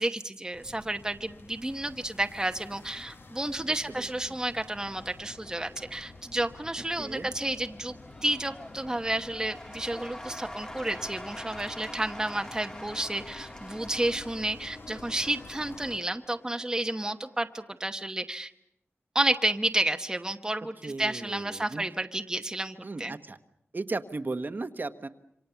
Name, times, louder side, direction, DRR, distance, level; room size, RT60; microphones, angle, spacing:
voice 1, 0.0-7.9 8.2-18.5 19.1-23.2, right 1 dB, 15° right, 6 dB, 1.0 m, -31 dB
sound 1, 0.5-16.0, left 3 dB, 50° left, 1.6 m, -49 dB
Cheering / Applause / Crowd, 4.0-17.5, left 1 dB, 15° left, 1.7 m, -47 dB
voice 2, 7.0-7.3 20.8-21.8 22.8-23.4 23.7-25.1, right 3 dB, 40° right, 9 dB, 1.2 m, -35 dB
27.5 x 25.5 x 7.0 m, 0.81 s
wide cardioid pair, 105°, 5 cm